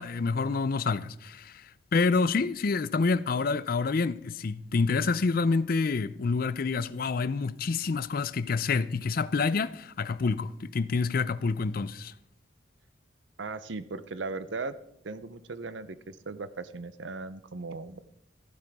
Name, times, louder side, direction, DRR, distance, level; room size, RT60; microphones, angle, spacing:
voice 1, 0.0-12.1, left 4 dB, 50° left, 0.4 m, -28 dB
voice 2, 13.4-14.8 15.0-18.0, right 3 dB, 75° right, 0.7 m, -37 dB
14.5 x 11.5 x 3.6 m
head